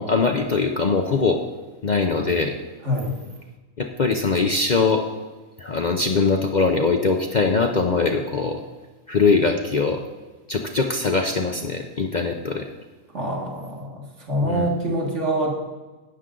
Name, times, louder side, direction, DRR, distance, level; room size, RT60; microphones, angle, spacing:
voice 1, 0.0-1.4 1.8-2.5 3.8-5.0 5.6-8.6 9.1-10.0 10.5-12.7 14.4-14.7, left 4 dB, 45° left, 3 dB, 0.6 m, -22 dB
voice 2, 2.8-3.2 13.1-15.5, right 1 dB, 60° right, -1 dB, 2.3 m, -25 dB
12.0 x 9.0 x 3.8 m, 1.2 s
omnidirectional pair, 1.4 m